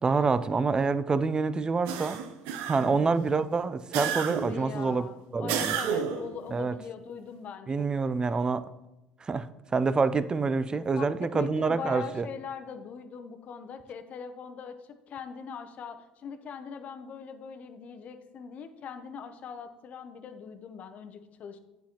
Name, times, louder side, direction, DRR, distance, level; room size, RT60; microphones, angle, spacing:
voice 1, 0.0-2.2 2.7-5.1 5.3-5.8 6.5-6.7 7.7-8.7 9.2-12.3, right 4 dB, 25° right, 0.4 m, -27 dB
sound 1, 1.9-3.1 3.9-4.7 5.5-6.3, right 8 dB, 80° right, 0.6 m, -31 dB
voice 2, 2.8-3.4 4.5-7.9 10.7-11.0 11.3-14.8 15.1-21.6, left 6 dB, 50° left, 0.6 m, -41 dB
8.6 x 5.7 x 2.9 m
supercardioid pair, 85°, 3 cm